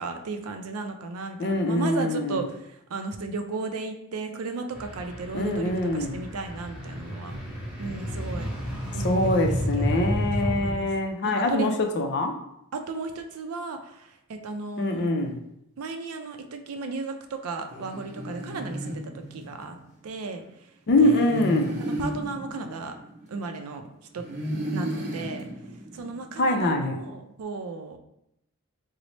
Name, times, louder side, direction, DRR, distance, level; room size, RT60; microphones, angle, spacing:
voice 1, 0.0-7.4 7.8-8.5 8.9-10.9 11.2-11.7 12.7-15.1 15.8-19.8 20.0-20.4 21.0-21.5 21.8-22.9 23.3-23.8 24.1-24.2 24.7-25.5 25.9-28.0, right 3 dB, 80° right, 6 dB, 0.4 m, -35 dB
voice 2, 1.4-2.5 5.3-6.1 9.0-12.3 14.8-15.4 20.9-21.9 26.4-27.0, left 1 dB, 50° left, 4 dB, 0.4 m, -24 dB
sound 1, 4.7-10.8, equal, 5° right, 1.0 m, -31 dB
sound 2, 17.7-19.8 20.9-23.6 24.2-26.4, equal, 35° right, 0.6 m, -34 dB
3.9 x 2.0 x 3.1 m, 0.80 s
head